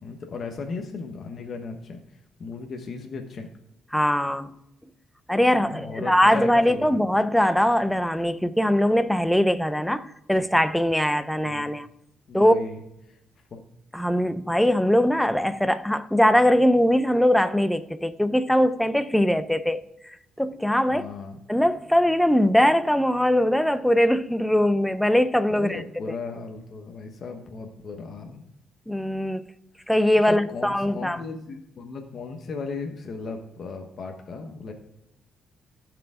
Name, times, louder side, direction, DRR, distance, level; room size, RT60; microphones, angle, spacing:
voice 1, 0.0-2.0 2.4-3.5 5.5-7.0 11.4-11.7 12.3-12.8 13.0-13.2 13.5-13.6 20.9-21.4 25.5-28.4 30.3-34.7, left 4 dB, 55° left, 1.1 m, -36 dB
voice 2, 3.9-4.5 5.3-11.9 12.3-12.5 13.9-21.0 21.5-25.8 28.9-29.4 29.9-31.2, equal, 5° left, 0.6 m, -21 dB
14.5 x 4.9 x 3.7 m
cardioid pair, 90°, 0 cm